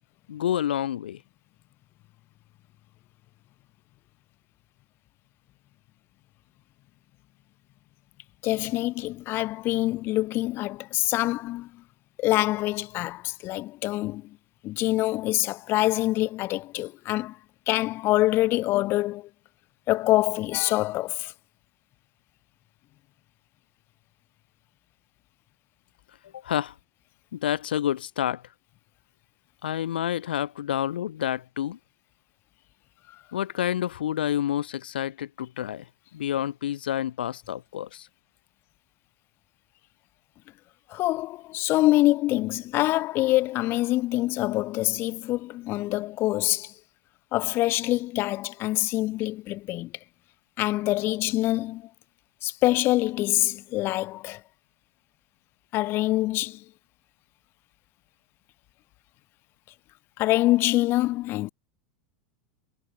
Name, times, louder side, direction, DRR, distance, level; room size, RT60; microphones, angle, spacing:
voice 1, 0.3-1.2 26.4-26.7 27.3-28.4 29.6-31.8 33.3-35.8 36.1-38.1, left 11 dB, 75° left, 0.6 m, -28 dB
voice 2, 8.4-11.7 12.2-14.3 14.6-17.4 17.7-19.3 19.9-21.3 40.9-46.7 47.3-49.9 50.6-51.9 52.4-54.4 55.7-56.6 60.2-61.5, left 17 dB, 45° left, 1.8 m, -25 dB
figure-of-eight pair, 90°, 5 cm